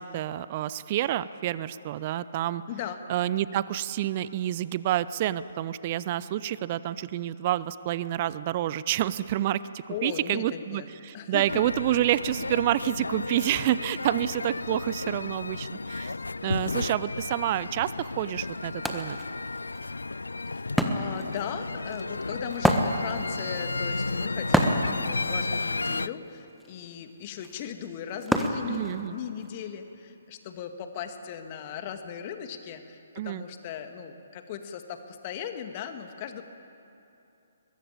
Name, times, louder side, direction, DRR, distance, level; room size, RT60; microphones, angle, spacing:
voice 1, 0.0-2.6 3.1-9.6 10.0-16.1 16.4-19.2 28.7-29.2 33.2-33.4, right 13 dB, 35° right, 16 dB, 0.6 m, -28 dB
voice 2, 9.9-10.9 11.1-11.4 20.5-36.4, left 8 dB, 35° left, 7 dB, 2.0 m, -38 dB
sound 1, 11.5-26.1, left 3 dB, 75° left, 0.5 m, -33 dB
Wood, 17.8-17.9 18.2-29.5, equal, ahead, 1.4 m, -30 dB
22.5 x 21.0 x 8.9 m, 2.8 s
figure-of-eight pair, 130°, 0 cm